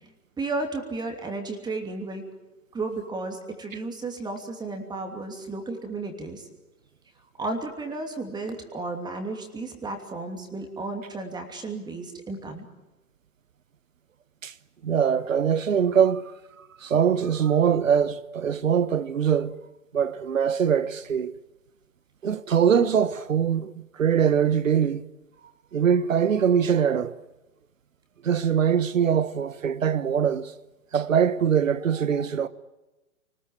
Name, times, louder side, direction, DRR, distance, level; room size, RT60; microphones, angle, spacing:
voice 1, 0.4-2.2 2.7-6.4 7.4-12.6, right 3 dB, 10° right, 2.9 m, -33 dB
voice 2, 14.8-19.5 19.9-21.3 22.2-25.0 25.7-27.2 28.2-30.5 30.9-32.5, right 8 dB, 60° right, 1.3 m, -23 dB
28.5 x 20.0 x 9.2 m
figure-of-eight pair, 120°, 43 cm